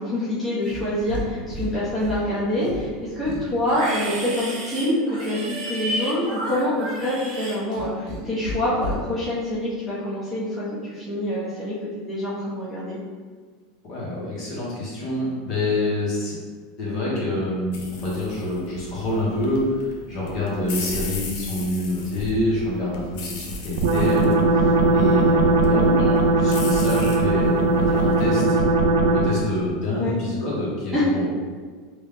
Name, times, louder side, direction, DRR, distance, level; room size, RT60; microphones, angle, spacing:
voice 1, 0.0-13.0 25.6-25.9 30.0-30.1 30.9-31.0, left 1 dB, ahead, -12 dB, 0.9 m, -26 dB
Livestock farm animals working animals, 0.6-1.2 1.5-2.2 2.6-8.2 8.4-9.0, equal, 50° right, 1.2 m, -31 dB
voice 2, 13.9-16.3 16.8-28.6 29.1-31.4, left 1 dB, 35° left, -7 dB, 1.1 m, -27 dB
sound 1, 17.7-28.4, left 2 dB, 60° left, 0.5 m, -36 dB
sound 2, 23.8-29.5, right 2 dB, 90° right, 0.4 m, -19 dB
3.1 x 2.3 x 3.4 m, 1.5 s
supercardioid pair, 165°, 0 cm